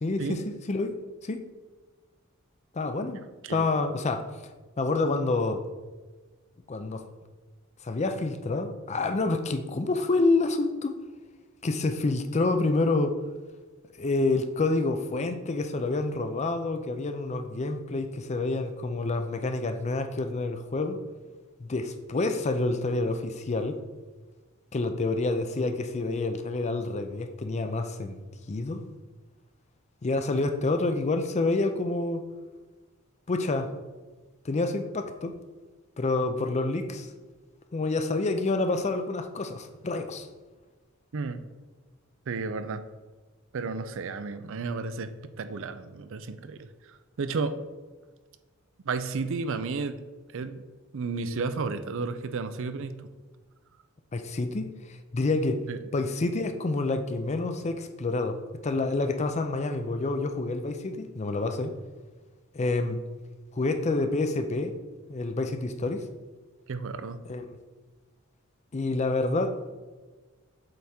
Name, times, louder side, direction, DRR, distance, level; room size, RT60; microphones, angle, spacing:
voice 1, 0.0-0.9 1.2-1.4 2.7-3.2 3.5-4.3 4.8-5.6 6.7-7.0 7.8-10.9 11.6-13.1 14.0-21.0 21.6-23.8 24.7-28.2 28.5-28.8 30.0-32.2 33.3-33.7 34.4-35.3 36.0-37.1 37.7-40.3 54.1-55.6 55.9-61.7 62.5-63.0 63.5-64.8 65.1-66.1 67.3-67.5 68.7-69.6, left 3 dB, 35° left, 8 dB, 0.5 m, -28 dB
voice 2, 42.3-42.8 43.5-45.1 45.4-46.6 46.8-47.6 48.9-50.0 50.3-50.6 50.9-53.1 55.7-55.8 66.7-67.2, right 4 dB, 65° right, 11 dB, 0.5 m, -32 dB
7.8 x 3.5 x 4.3 m, 1.3 s
head